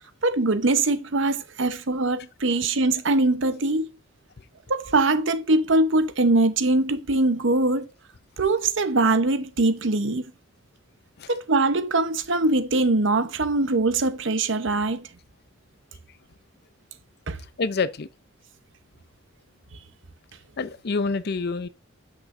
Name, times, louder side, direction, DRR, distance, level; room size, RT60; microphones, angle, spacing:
voice 1, 0.2-3.9 4.7-7.9 8.4-10.3 11.3-15.1 17.3-17.4, right 2 dB, 70° right, 0.9 m, -22 dB
voice 2, 17.6-18.1 20.6-21.7, left 4 dB, 55° left, 0.6 m, -27 dB
8.0 x 6.6 x 2.6 m
head